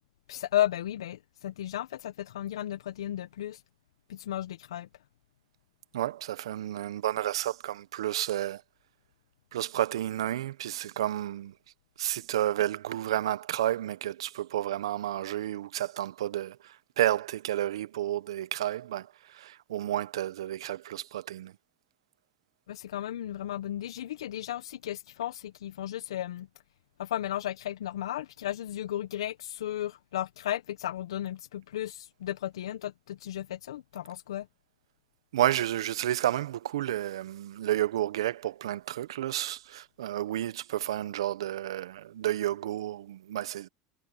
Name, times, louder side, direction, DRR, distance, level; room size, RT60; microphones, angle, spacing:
voice 1, 0.3-3.6 4.1-4.9 22.7-26.5 27.0-34.5, left 12 dB, 80° left, 1.3 m, -34 dB
voice 2, 5.9-8.6 9.5-11.5 12.0-21.5 35.3-43.7, right 13 dB, 80° right, 1.2 m, -31 dB
hypercardioid pair, 80°, 3 cm